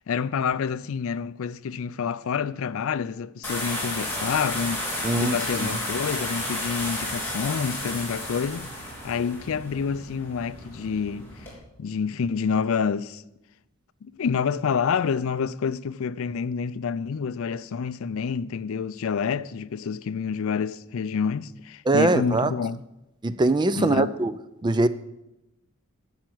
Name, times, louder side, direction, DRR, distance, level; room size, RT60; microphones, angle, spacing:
voice 1, 0.1-11.5 11.8-13.2 14.0-22.8 23.8-24.1, left 6 dB, 65° left, 0.4 m, -28 dB
sound 1, 3.4-11.5, left 1 dB, 10° left, 3.2 m, -32 dB
voice 2, 5.0-5.7 21.9-22.5 23.2-24.3 24.6-24.9, right 2 dB, 20° right, 0.4 m, -22 dB
10.5 x 5.8 x 7.8 m
head